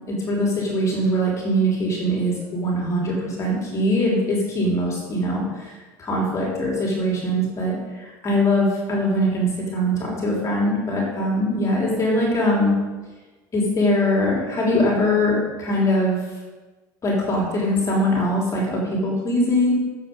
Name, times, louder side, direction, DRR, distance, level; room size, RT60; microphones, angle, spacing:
voice 1, 0.1-5.7 6.0-12.8 13.5-16.2 17.0-19.7, equal, 35° left, -3 dB, 3.6 m, -22 dB
10.5 x 7.7 x 5.4 m, 1.3 s
supercardioid pair, 110°, 9 cm